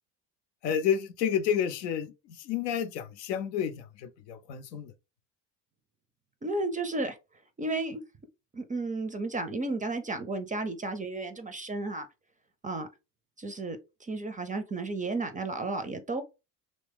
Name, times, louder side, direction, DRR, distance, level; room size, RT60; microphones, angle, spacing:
voice 1, 0.6-4.9, left 8 dB, 75° left, 0.6 m, -30 dB
voice 2, 6.4-7.2 7.6-8.0 8.5-12.1 12.6-12.9 13.4-16.2, right 2 dB, 15° right, 0.4 m, -33 dB
3.0 x 2.7 x 3.4 m
figure-of-eight pair, 50°, 50 cm